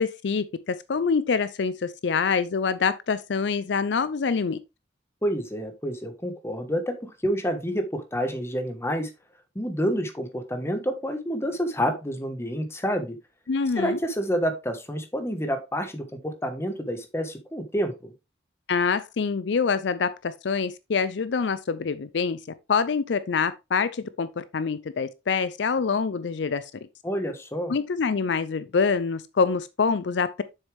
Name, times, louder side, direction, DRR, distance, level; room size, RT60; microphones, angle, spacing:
voice 1, 0.0-4.6 13.5-14.0 18.7-22.4 22.7-26.7 27.7-30.4, left 5 dB, 65° left, 0.5 m, -25 dB
voice 2, 5.2-9.1 9.5-13.2 13.7-18.1 27.0-27.7, equal, 15° left, 1.3 m, -28 dB
7.2 x 6.6 x 3.4 m
head